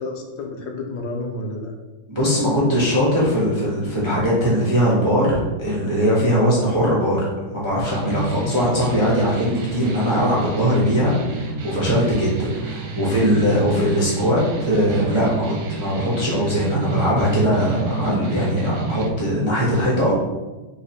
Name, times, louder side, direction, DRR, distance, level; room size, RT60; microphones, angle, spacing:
voice 1, 0.0-1.7 13.1-13.5, left 2 dB, 90° left, 2 dB, 1.6 m, -30 dB
voice 2, 2.1-15.4 15.7-20.1, equal, 30° right, -7 dB, 0.5 m, -20 dB
sound 1, 7.9-19.1, right 3 dB, 65° right, 1.1 m, -29 dB
4.0 x 3.2 x 4.2 m, 1.2 s
omnidirectional pair, 2.2 m